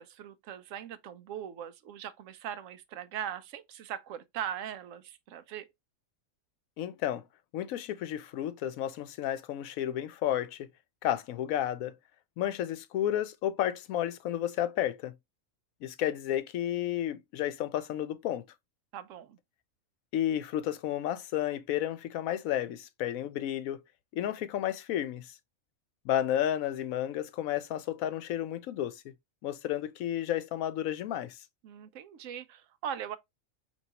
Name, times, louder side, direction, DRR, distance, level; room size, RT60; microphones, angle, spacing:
voice 1, 0.0-5.7 18.9-19.4 31.6-33.2, right 9 dB, 70° right, 0.9 m, -40 dB
voice 2, 6.8-7.2 7.5-10.7 11.0-12.0 12.4-15.1 15.8-18.4 20.1-23.8 24.1-25.3 26.0-29.1 29.4-31.4, left 11 dB, 85° left, 1.0 m, -32 dB
4.5 x 3.0 x 2.8 m
omnidirectional pair, 1.4 m